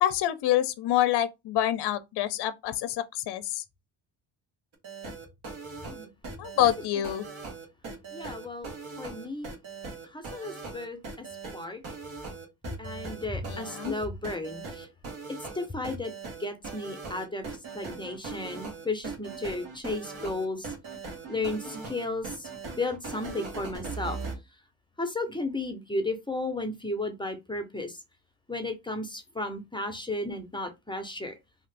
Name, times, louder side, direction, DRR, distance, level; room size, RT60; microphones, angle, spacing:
voice 1, 0.0-3.6 6.4-7.2 13.5-13.9, left 12 dB, 55° left, 0.5 m, -27 dB
sound 1, 4.7-24.4, right 4 dB, 75° right, 1.3 m, -40 dB
voice 2, 8.1-8.7 9.0-9.5 10.0-11.3 11.5-11.8 12.8-14.9 15.3-16.1 16.4-20.7 21.3-22.5 22.8-24.2 25.0-28.0 28.5-31.4, left 2 dB, 10° left, 0.6 m, -34 dB
2.8 x 2.5 x 3.2 m
cardioid pair, 100°, 47 cm